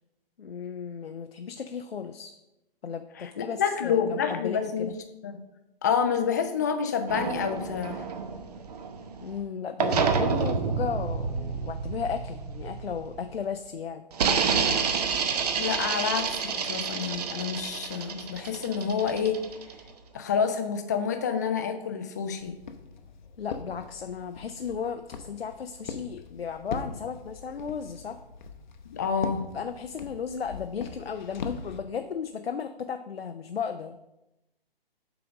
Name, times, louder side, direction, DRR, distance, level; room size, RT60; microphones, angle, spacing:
voice 1, 0.4-2.4 2.8-4.9 9.2-14.0 23.4-28.2 29.5-34.0, left 6 dB, 85° left, 7 dB, 0.5 m, -35 dB
voice 2, 3.2-4.9 5.2-5.4 5.8-8.0 15.5-19.4 20.1-22.6 28.9-29.4, left 6 dB, 20° left, 6 dB, 0.4 m, -28 dB
sound 1, 7.1-9.4 9.8-13.4 14.1-19.9, right 5 dB, 45° right, 0.7 m, -29 dB
Walk footsteps, 22.4-31.8, left 5 dB, 50° left, 0.8 m, -41 dB
7.9 x 3.9 x 4.9 m, 0.95 s
figure-of-eight pair, 135°, 29 cm